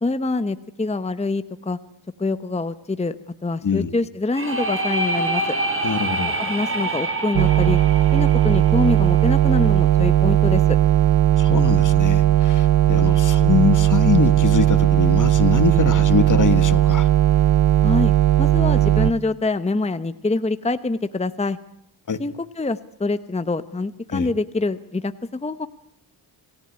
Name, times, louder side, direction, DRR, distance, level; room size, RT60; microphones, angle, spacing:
voice 1, 0.0-1.8 2.2-3.2 3.4-5.4 6.4-7.8 8.1-10.8 17.8-18.1 18.4-21.6 22.2-25.7, left 3 dB, 15° left, 12 dB, 0.9 m, -25 dB
voice 2, 3.6-3.9 5.8-6.3 11.4-17.1 22.1-22.2 24.1-24.3, left 6 dB, 40° left, 14 dB, 1.3 m, -23 dB
sound 1, 4.3-10.0, right 2 dB, 25° right, 5.8 m, -27 dB
sound 2, 7.3-19.1, right 12 dB, 75° right, 0.9 m, -17 dB
27.5 x 18.0 x 9.8 m, 0.78 s
wide cardioid pair, 125°, 47 cm